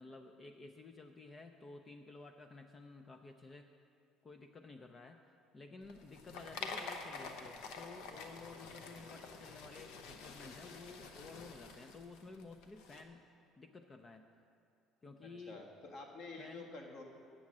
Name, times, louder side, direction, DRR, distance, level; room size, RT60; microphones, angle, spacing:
voice 1, 0.0-3.7 4.2-5.2 5.5-13.3 13.6-14.3 15.0-15.6 16.4-16.7, left 3 dB, 30° left, 6 dB, 0.5 m, -53 dB
sound 1, 5.8-13.0, left 4 dB, 80° left, 0.8 m, -48 dB
voice 2, 15.2-17.0, left 3 dB, 60° left, 0 dB, 1.6 m, -49 dB
8.5 x 6.5 x 7.3 m, 2.6 s
cardioid pair, 105°, 0 cm